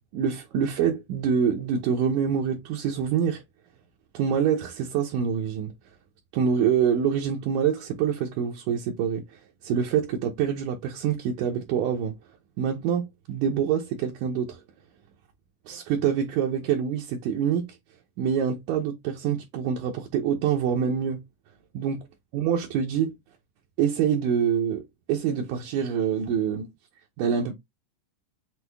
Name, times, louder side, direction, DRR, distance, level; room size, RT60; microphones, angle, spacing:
voice 1, 0.1-3.4 4.1-5.7 6.3-12.2 12.6-14.6 15.7-17.8 18.2-21.2 21.7-22.0 22.3-23.1 23.8-26.7 27.2-27.5, right 8 dB, 75° right, 2.1 m, -26 dB
6.2 x 2.1 x 3.3 m
omnidirectional pair, 3.6 m